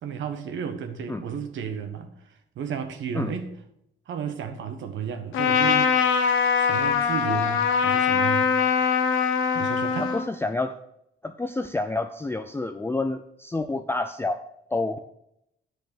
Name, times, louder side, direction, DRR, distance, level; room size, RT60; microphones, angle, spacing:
voice 1, 0.0-2.1 2.5-3.5 4.1-5.9 6.6-8.5 9.5-10.1, right 7 dB, 75° right, 7 dB, 1.3 m, -32 dB
Trumpet, 5.3-10.3, left 6 dB, 80° left, 1.2 m, -22 dB
voice 2, 10.0-10.8 11.2-14.4 14.7-15.0, left 2 dB, 10° left, 8 dB, 0.5 m, -28 dB
8.3 x 6.4 x 6.4 m, 0.78 s
cardioid pair, 90°, 20 cm